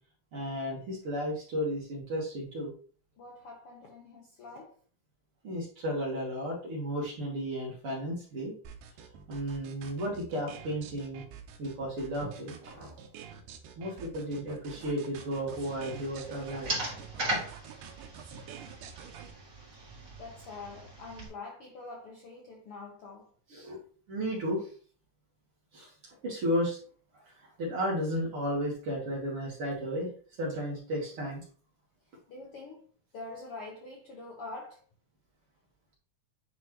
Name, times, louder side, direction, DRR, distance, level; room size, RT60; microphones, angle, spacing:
voice 1, 0.3-2.7 5.4-8.5 9.3-11.2 11.6-12.9 13.8-16.7 23.5-23.8 24.1-24.7 25.7-25.9 26.2-26.8 27.6-30.1 30.4-31.4, equal, 50° right, 2.0 m, -33 dB
voice 2, 3.2-4.7 20.2-23.3 32.3-32.8 33.1-34.8, left 3 dB, 65° left, 1.5 m, -45 dB
sound 1, 8.6-19.3, right 8 dB, 80° right, 2.3 m, -48 dB
sound 2, 15.5-21.3, right 1 dB, 30° right, 2.4 m, -39 dB
9.7 x 3.4 x 3.0 m
omnidirectional pair, 3.8 m